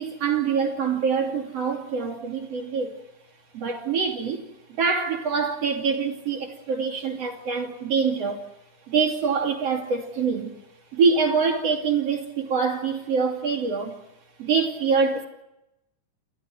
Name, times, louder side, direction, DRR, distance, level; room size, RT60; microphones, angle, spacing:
voice 1, 0.0-2.9 3.5-8.4 8.9-10.5 10.9-14.0 14.4-15.2, right 5 dB, 40° right, 3.4 m, -25 dB
29.5 x 29.0 x 4.5 m
omnidirectional pair, 4.7 m